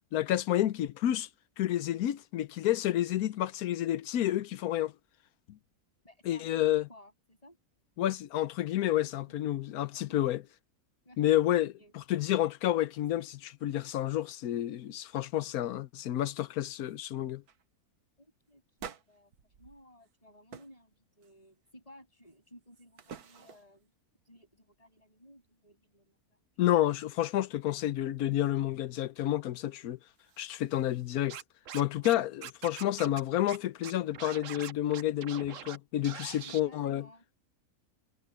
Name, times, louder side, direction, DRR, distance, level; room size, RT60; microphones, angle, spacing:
voice 1, 0.1-1.3 1.6-4.9 5.5-5.6 6.3-6.8 8.0-10.4 11.2-17.4 26.6-30.0 30.4-31.4 31.7-37.1, left 13 dB, 80° left, 1.2 m, -30 dB
voice 2, 6.0-7.6 8.5-8.6 9.0-9.1 11.0-11.4 11.8-11.9 18.2-23.9 24.2-26.4 32.0-32.3 36.4-37.2, equal, 25° left, 7.7 m, -56 dB
sound 1, 13.0-13.1 13.5-14.3 14.6-14.9 15.3-15.7 16.3-16.4 16.8-17.0 17.4-17.6 18.8-20.2 20.5-20.8 21.2-21.7 22.3-23.9 29.9-31.3, right 7 dB, 85° right, 1.7 m, -52 dB
Scratching (performance technique), 31.3-32.1 32.4-33.2 33.5-33.6 33.8-35.8 36.0-36.6, right 9 dB, 60° right, 1.2 m, -43 dB
omnidirectional pair, 1.6 m